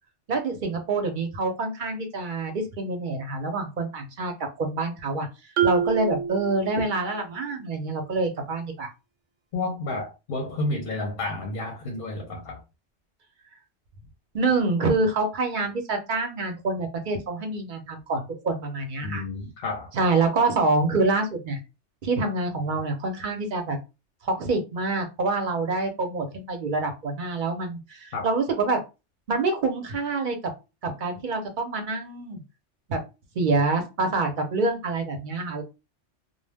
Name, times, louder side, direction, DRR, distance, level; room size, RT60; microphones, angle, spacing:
voice 1, 0.3-4.3 4.6-5.3 5.6-8.9 14.3-19.2 19.9-21.6 22.0-23.8 24.2-28.8 29.3-30.4 30.8-32.4 32.9-33.0 33.4-35.6, right 3 dB, 50° right, 0.7 m, -26 dB
Marimba xylophone, 5.6-7.3, right 7 dB, 80° right, 0.9 m, -27 dB
voice 2, 9.5-12.6 19.0-19.9 28.1-28.3, left 2 dB, 55° left, 0.7 m, -31 dB
2.2 x 2.1 x 3.3 m
omnidirectional pair, 1.2 m